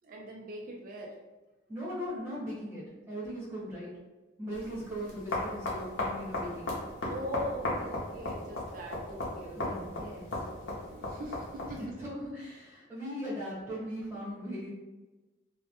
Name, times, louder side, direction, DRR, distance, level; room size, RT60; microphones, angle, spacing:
voice 1, 0.0-1.1 7.1-9.9 10.6-11.8, equal, 45° right, 0 dB, 0.4 m, -41 dB
voice 2, 1.7-3.9 4.4-6.7 9.5-10.4 11.6-14.7, equal, 10° right, -11 dB, 1.0 m, -39 dB
sound 1, 4.5-11.9, left 1 dB, 85° left, 0.6 m, -36 dB
2.1 x 2.0 x 2.8 m, 1.1 s
head